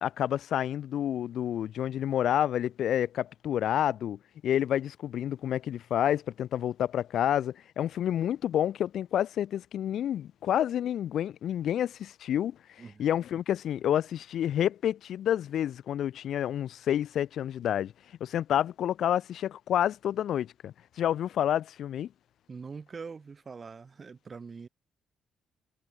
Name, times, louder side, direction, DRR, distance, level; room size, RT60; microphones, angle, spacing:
voice 1, 0.0-4.2 4.4-12.6 13.0-17.9 18.2-22.1, left 10 dB, 70° left, 0.8 m, -29 dB
voice 2, 22.5-24.7, right 5 dB, 35° right, 2.5 m, -43 dB
cardioid pair, 90°, 0 cm